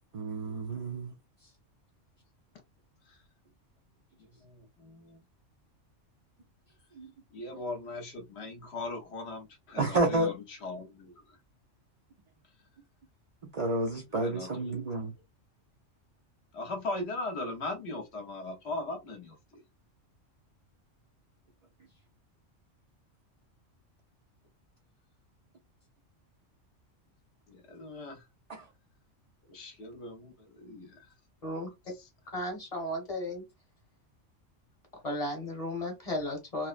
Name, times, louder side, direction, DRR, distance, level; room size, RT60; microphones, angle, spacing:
voice 1, 0.1-1.1 7.0-7.1 9.8-10.3 13.5-15.1 28.5-28.6, right 2 dB, 55° right, 0.4 m, -30 dB
voice 2, 4.4-5.2 7.3-11.1 14.1-14.8 16.5-19.6 27.5-28.2 29.5-31.1 32.0-32.1, left 2 dB, 65° left, 0.9 m, -39 dB
voice 3, 32.3-33.4 35.0-36.7, left 1 dB, 30° left, 0.9 m, -34 dB
2.9 x 2.0 x 2.4 m
omnidirectional pair, 1.3 m